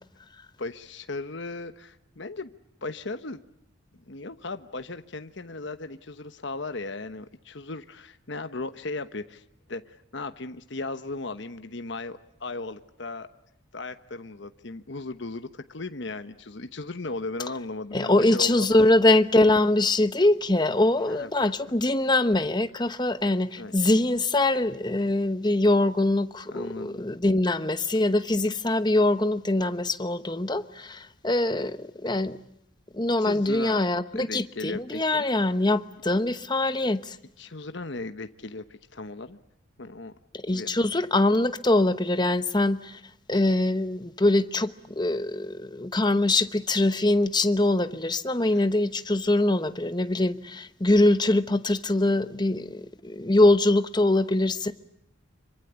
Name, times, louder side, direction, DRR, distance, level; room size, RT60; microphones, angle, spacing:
voice 1, 0.6-2.5 2.8-3.4 4.1-9.4 9.7-13.3 13.7-18.9 21.0-21.5 23.6-23.7 26.5-27.0 33.2-33.8 34.1-35.2 37.4-38.6 38.9-39.4 39.8-40.1 40.5-40.7 48.5-48.6, left 3 dB, 60° left, 1.1 m, -36 dB
voice 2, 17.9-32.4 32.9-37.2 40.3-43.0 43.3-54.7, left 2 dB, 20° left, 1.0 m, -23 dB
26.5 x 24.5 x 8.2 m
head